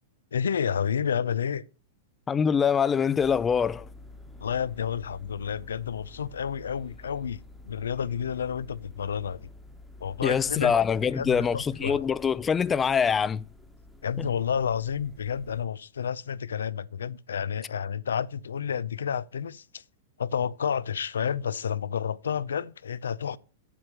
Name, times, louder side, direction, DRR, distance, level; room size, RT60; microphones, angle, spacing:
voice 1, 0.3-1.6 4.4-7.4 7.7-9.5 10.0-10.7 11.1-12.0 14.0-19.8 20.2-23.4, left 7 dB, 90° left, 0.5 m, -30 dB
voice 2, 2.3-3.9 10.2-13.5 14.2-14.3, left 7 dB, 20° left, 0.4 m, -24 dB
sound 1, 3.2-15.6, left 2 dB, 5° left, 1.3 m, -49 dB
8.3 x 7.6 x 6.6 m
hypercardioid pair, 125°, 0 cm